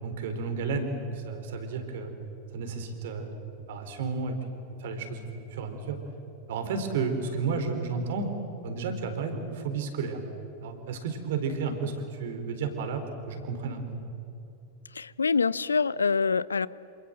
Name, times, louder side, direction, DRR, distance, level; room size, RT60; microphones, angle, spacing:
voice 1, 0.0-2.1 2.5-3.3 3.7-6.0 6.5-8.3 8.6-10.2 10.6-13.9, right 4 dB, 55° right, 7 dB, 4.1 m, -32 dB
voice 2, 14.9-16.7, left 5 dB, 75° left, 20 dB, 0.7 m, -25 dB
27.5 x 27.5 x 7.8 m, 2.7 s
figure-of-eight pair, 90°, 0 cm